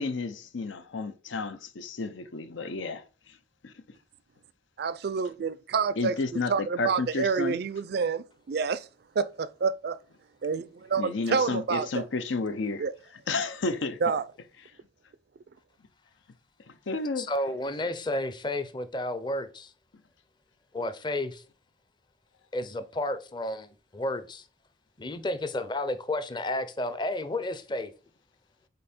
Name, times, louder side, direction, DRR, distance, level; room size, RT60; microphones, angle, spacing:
voice 1, 0.0-3.4 3.6-3.7 6.0-7.6 11.0-12.8 13.3-14.0 16.7-17.3, left 3 dB, 85° left, 0.6 m, -32 dB
voice 2, 4.8-6.2 6.5-8.9 9.2-10.0 10.4-12.1 12.8-12.9 14.0-14.3, right 5 dB, 60° right, 0.4 m, -28 dB
voice 3, 17.2-19.7 20.7-21.4 22.5-24.4 25.0-27.9, left 1 dB, 25° left, 0.6 m, -32 dB
5.3 x 4.2 x 4.3 m
head